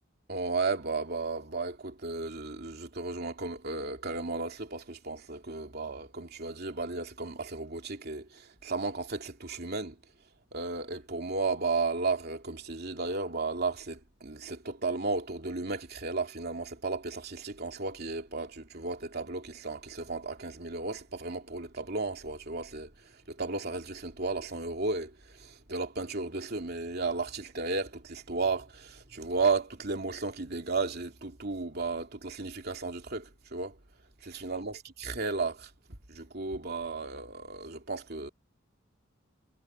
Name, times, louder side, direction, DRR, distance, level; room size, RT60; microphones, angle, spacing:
voice 1, 0.3-10.0 10.5-33.8 34.2-35.7 36.1-38.3, right 3 dB, 55° right, 2.8 m, -34 dB
head